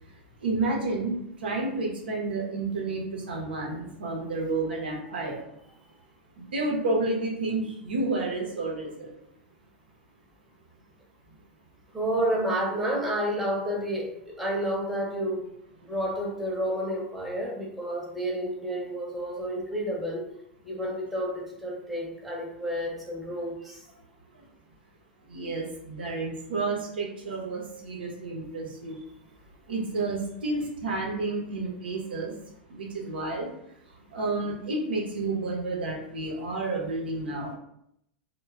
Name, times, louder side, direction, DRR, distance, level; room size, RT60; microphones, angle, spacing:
voice 1, 0.4-5.4 6.4-9.1 24.3-24.5 25.3-29.0 29.7-32.3 32.7-33.5 33.9-37.6, right 3 dB, 70° right, -2 dB, 0.7 m, -30 dB
voice 2, 11.9-15.4 15.9-20.2 20.6-23.8, right 1 dB, 5° right, -4 dB, 0.8 m, -30 dB
3.1 x 2.2 x 2.3 m, 0.77 s
figure-of-eight pair, 90°, 6 cm